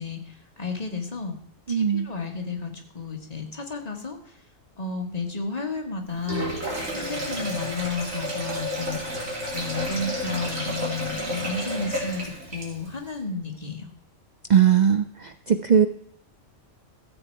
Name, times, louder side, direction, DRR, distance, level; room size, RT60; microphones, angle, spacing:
voice 1, 0.0-1.4 1.7-4.4 4.8-6.5 6.9-9.0 9.5-13.9, left 4 dB, 30° left, 3 dB, 1.6 m, -32 dB
voice 2, 1.7-2.1 14.5-15.9, right 8 dB, 60° right, 10 dB, 0.4 m, -19 dB
Sink (filling or washing), 6.1-13.0, equal, 80° right, 3.0 m, -31 dB
14.0 x 7.9 x 4.5 m, 0.68 s
omnidirectional pair, 1.3 m